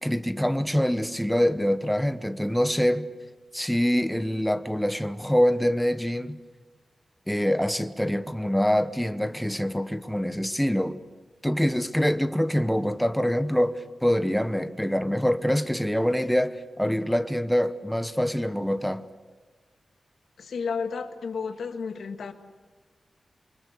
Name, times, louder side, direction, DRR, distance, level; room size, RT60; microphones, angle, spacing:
voice 1, 0.0-3.1 3.5-6.4 7.3-11.0 11.4-19.0, equal, ahead, 0.9 m, -25 dB
voice 2, 20.4-22.3, left 5 dB, 90° left, 1.6 m, -32 dB
28.0 x 24.0 x 6.5 m
wide cardioid pair, 135°, 0 cm